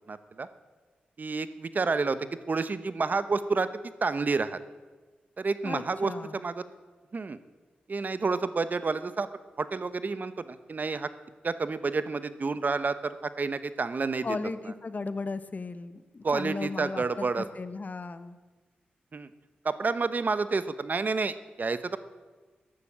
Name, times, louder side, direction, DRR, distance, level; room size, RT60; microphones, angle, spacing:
voice 1, 0.1-0.5 1.2-4.6 5.4-6.6 7.1-7.4 7.9-9.3 9.6-11.1 11.4-14.3 16.2-17.4 19.1-19.3 19.6-22.0, right 4 dB, 50° right, 13 dB, 0.9 m, -29 dB
voice 2, 5.6-6.4 14.2-18.4, left 3 dB, 50° left, 13 dB, 1.1 m, -36 dB
14.0 x 11.5 x 7.5 m, 1.3 s
cardioid pair, 45°, 4 cm